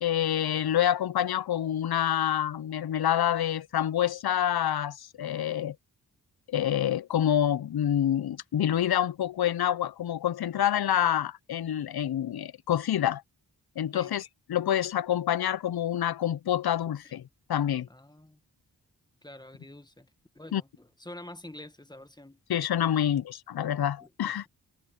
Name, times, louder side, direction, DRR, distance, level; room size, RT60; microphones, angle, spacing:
voice 1, 0.0-5.8 6.5-13.2 13.8-17.9 20.5-20.6 22.5-24.5, left 10 dB, 65° left, 0.6 m, -27 dB
voice 2, 17.9-18.4 19.2-20.1 20.3-22.4 23.0-23.2 24.0-24.5, left 1 dB, 10° left, 1.5 m, -47 dB
wide cardioid pair, 65°, 41 cm